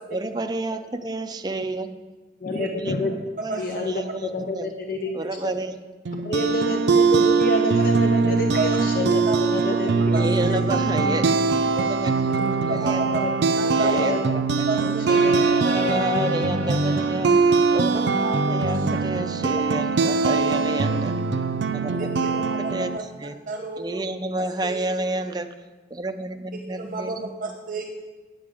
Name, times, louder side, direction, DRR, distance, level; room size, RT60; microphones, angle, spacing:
voice 1, 0.1-1.9 2.8-3.0 3.4-4.7 5.1-5.8 8.3-8.4 10.1-13.0 13.8-14.7 15.4-17.3 17.7-21.1 21.7-22.4 22.7-23.4 23.8-25.5 25.9-27.3, right 2 dB, 25° right, 7 dB, 0.5 m, -30 dB
voice 2, 2.4-3.1 3.6-5.1 5.4-5.5 6.1-10.6 12.6-12.8 13.2-13.3 13.9-14.2 14.8-16.3, left 1 dB, 55° left, 3 dB, 0.7 m, -28 dB
sound 1, 6.0-23.0, right 4 dB, 80° right, 0.5 m, -22 dB
voice 3, 10.1-10.6 12.6-13.2 13.6-14.1 14.7-15.1 18.7-19.0 20.3-20.5 21.8-23.0 23.5-23.8 24.6-24.8 26.7-27.9, right 3 dB, 50° right, 2 dB, 0.9 m, -31 dB
sound 2, 15.1-18.4, right 1 dB, 15° left, 2.7 m, -34 dB
8.9 x 7.7 x 5.0 m, 1.3 s
head